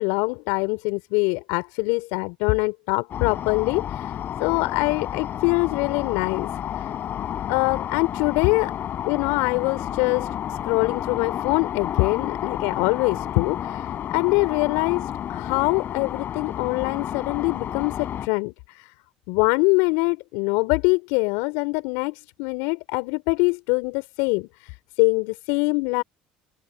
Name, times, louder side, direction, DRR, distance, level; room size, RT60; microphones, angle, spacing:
voice 1, 0.0-4.1 4.4-6.5 6.8-6.9 7.5-8.7 9.0-10.3 10.7-18.9 19.3-24.7 25.0-26.0, left 30 dB, 70° left, 3.7 m, -24 dB
sound 1, 3.1-18.3, left 10 dB, 50° left, 4.7 m, -31 dB
hypercardioid pair, 60°, 4 cm